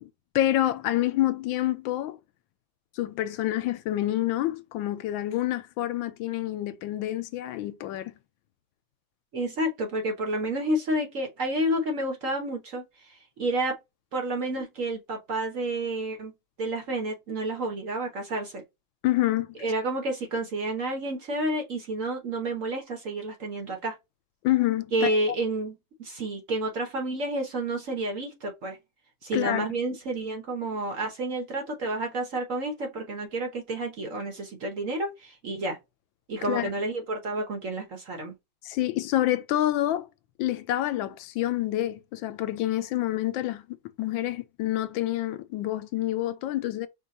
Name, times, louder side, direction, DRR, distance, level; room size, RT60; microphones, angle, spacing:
voice 1, 0.3-2.2 3.0-8.1 19.0-19.5 24.4-25.1 29.3-29.7 36.4-36.7 38.6-40.1 40.4-46.9, left 14 dB, 85° left, 1.3 m, -27 dB
voice 2, 9.3-12.8 13.4-13.8 14.1-16.3 16.6-18.6 19.6-23.9 24.9-28.8 29.2-35.8 36.3-38.3, right 1 dB, 50° right, 1.2 m, -30 dB
4.9 x 2.3 x 4.0 m
omnidirectional pair, 2.1 m